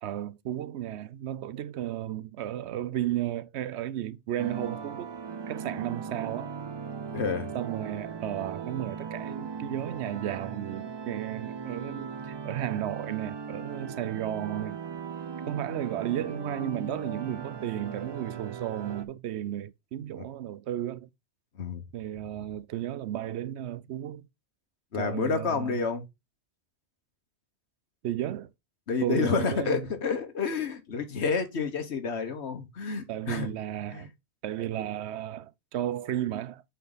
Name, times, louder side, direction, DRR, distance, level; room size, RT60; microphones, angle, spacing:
voice 1, 0.0-5.1 5.5-6.5 7.5-14.8 15.5-21.1 21.9-24.3 25.0-25.8 28.0-28.5 29.0-29.9 33.1-34.1 34.4-36.6, right 12 dB, 90° right, 0.9 m, -33 dB
sound 1, 4.4-19.0, right 6 dB, 35° right, 0.4 m, -38 dB
voice 2, 7.1-7.5 20.2-20.3 21.5-21.8 24.9-26.1 28.9-33.5 33.9-34.1, left 5 dB, 85° left, 1.5 m, -29 dB
8.1 x 4.6 x 4.0 m
omnidirectional pair, 1.1 m